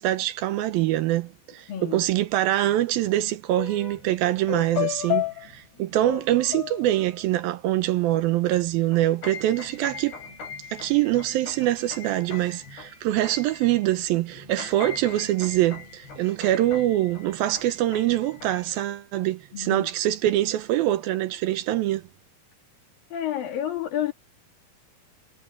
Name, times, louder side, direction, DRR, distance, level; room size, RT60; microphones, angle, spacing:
voice 1, 0.0-10.2 10.7-22.0, right 14 dB, 75° right, 2.4 m, -24 dB
voice 2, 1.7-2.0 19.5-19.9 23.1-24.1, left 10 dB, 60° left, 4.0 m, -30 dB
sound 1, 3.6-4.1 4.5-7.4 8.2-8.3 8.6-13.9 14.3-18.8, left 12 dB, 85° left, 9.0 m, -36 dB
omnidirectional pair, 4.7 m